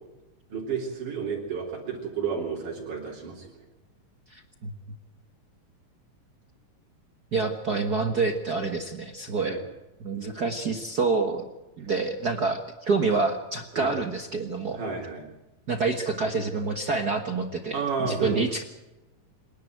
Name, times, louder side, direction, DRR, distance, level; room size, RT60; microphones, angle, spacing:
voice 1, 0.5-3.5 9.5-9.6 13.8-13.9 14.7-15.3 17.7-18.4, right 5 dB, 70° right, -3 dB, 4.9 m, -31 dB
voice 2, 4.3-4.7 7.3-9.6 10.0-11.5 11.8-14.8 15.7-18.6, right 4 dB, 50° right, 6 dB, 1.1 m, -27 dB
27.5 x 11.0 x 9.2 m, 1.0 s
omnidirectional pair, 3.8 m